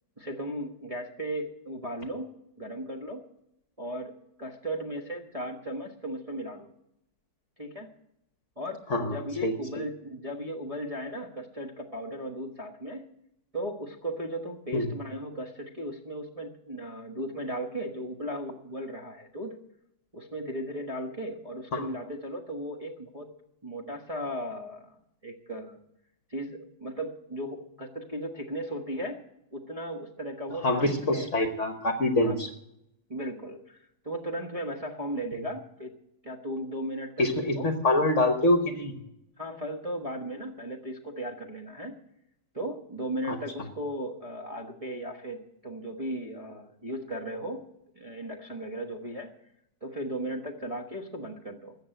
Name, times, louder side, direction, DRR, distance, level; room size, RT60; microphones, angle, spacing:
voice 1, 0.2-2.3 2.6-3.2 3.8-6.7 7.6-7.9 8.6-13.1 13.5-19.6 20.1-23.3 23.6-25.0 25.2-25.8 26.3-29.2 29.5-31.3 32.2-32.4 33.1-35.9 36.2-37.3 37.5-37.7 39.4-42.0 42.5-47.6 47.9-49.3 49.8-51.7, equal, 20° right, -1 dB, 1.1 m, -36 dB
voice 2, 9.4-9.8 14.7-14.9 21.7-21.9 30.6-32.5 37.2-38.9 43.3-43.4, left 1 dB, 45° left, 7 dB, 1.3 m, -25 dB
14.0 x 7.9 x 9.0 m, 0.80 s
omnidirectional pair, 2.1 m